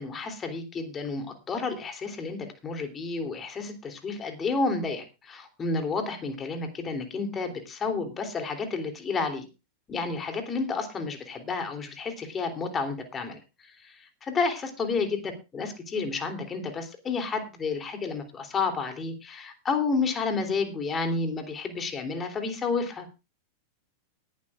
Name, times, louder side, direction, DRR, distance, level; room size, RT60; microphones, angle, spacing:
voice 1, 0.0-9.4 9.9-13.4 13.8-23.1, left 4 dB, 20° left, 6 dB, 3.3 m, -31 dB
19.5 x 11.5 x 2.5 m, 0.28 s
figure-of-eight pair, 90°, 0 cm